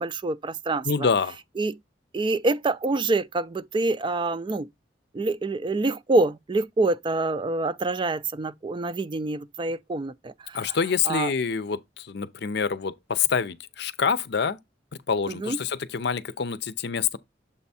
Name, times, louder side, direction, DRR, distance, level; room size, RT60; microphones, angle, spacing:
voice 1, 0.0-1.1 1.6-1.8 2.1-4.7 5.1-10.8 11.1-11.3 15.3-15.6, right 2 dB, 30° right, 0.4 m, -26 dB
voice 2, 0.8-1.4 10.5-14.6 15.1-17.2, left 6 dB, 65° left, 0.6 m, -26 dB
7.2 x 3.5 x 4.1 m
head